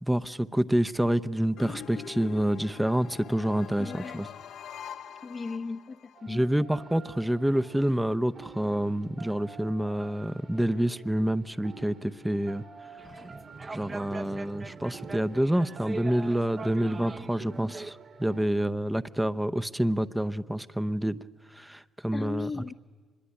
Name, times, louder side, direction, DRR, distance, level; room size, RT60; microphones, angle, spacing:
voice 1, 0.0-4.3 6.3-12.6 13.7-21.2 21.5-22.5, right 1 dB, 5° right, 12 dB, 0.8 m, -28 dB
sound 1, 1.6-6.2, left 8 dB, 75° left, 1.1 m, -44 dB
voice 2, 3.8-4.2 5.2-6.4 22.1-22.7, left 4 dB, 35° left, 2 dB, 0.8 m, -36 dB
sound 2, 6.1-18.4, right 5 dB, 55° right, 3.0 m, -49 dB
sound 3, 13.0-17.9, right 3 dB, 30° right, 1.0 m, -42 dB
25.5 x 22.0 x 9.8 m, 1.5 s
cardioid pair, 90°, 0 cm